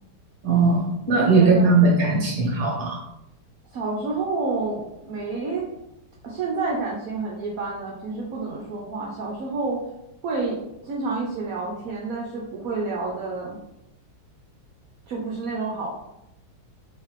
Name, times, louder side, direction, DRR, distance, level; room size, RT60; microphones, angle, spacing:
voice 1, 0.4-3.0, right 3 dB, 35° right, -3 dB, 1.1 m, -19 dB
voice 2, 1.0-1.8 3.7-5.7 6.2-9.8 10.2-13.6 15.1-15.9, right 3 dB, 65° right, -3 dB, 1.0 m, -29 dB
3.8 x 3.1 x 3.0 m, 0.86 s
omnidirectional pair, 1.9 m